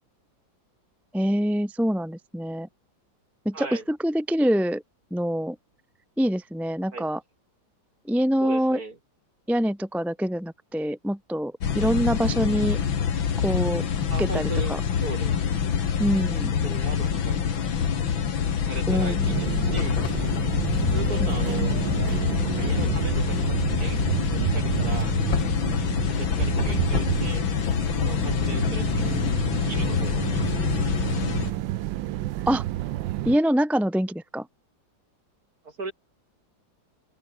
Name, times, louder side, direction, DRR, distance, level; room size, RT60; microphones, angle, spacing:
voice 1, 1.1-2.7 3.4-4.8 5.1-5.6 6.2-7.2 8.0-8.8 9.5-12.8 13.4-13.8 14.2-14.8 16.0-16.5 18.9-19.3 21.2-21.4 32.5-32.6 33.2-34.5, equal, ahead, 1.0 m, -25 dB
voice 2, 3.5-3.8 6.9-7.1 8.4-9.0 14.1-15.4 16.6-17.6 18.7-20.0 20.9-21.7 22.4-24.0 24.3-25.1 26.2-27.5 28.0-29.3 29.6-30.2 35.6-35.9, right 3 dB, 50° right, 4.4 m, -37 dB
sound 1, 11.6-31.5, left 7 dB, 80° left, 2.6 m, -26 dB
sound 2, 13.0-13.4 13.8-13.9 14.6-15.1 15.6-15.8 16.5-29.3, left 3 dB, 45° left, 4.8 m, -44 dB
sound 3, 19.2-33.4, right 14 dB, 75° right, 1.4 m, -30 dB
open air
omnidirectional pair, 2.1 m